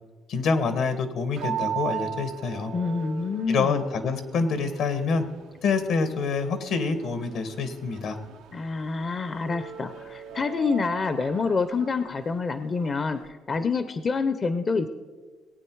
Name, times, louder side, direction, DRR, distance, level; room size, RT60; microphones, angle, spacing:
voice 1, 0.3-2.7 3.5-5.2 5.6-8.2, left 4 dB, 75° left, 10 dB, 1.5 m, -26 dB
sound 1, 1.4-13.3, right 10 dB, 90° right, 0.9 m, -39 dB
voice 2, 2.7-3.8 8.5-14.9, left 4 dB, 40° left, 11 dB, 0.7 m, -27 dB
19.5 x 9.0 x 4.7 m, 1.4 s
supercardioid pair, 75°, 0 cm